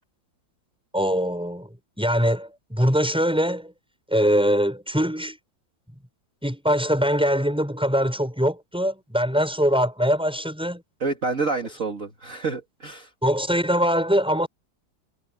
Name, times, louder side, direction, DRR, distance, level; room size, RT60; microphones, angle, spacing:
voice 1, 0.9-1.7 2.0-3.7 4.1-5.4 6.4-10.8 13.2-14.5, equal, ahead, 7.0 m, -22 dB
voice 2, 11.0-13.1, right 4 dB, 40° right, 2.5 m, -28 dB
omnidirectional pair, 2.1 m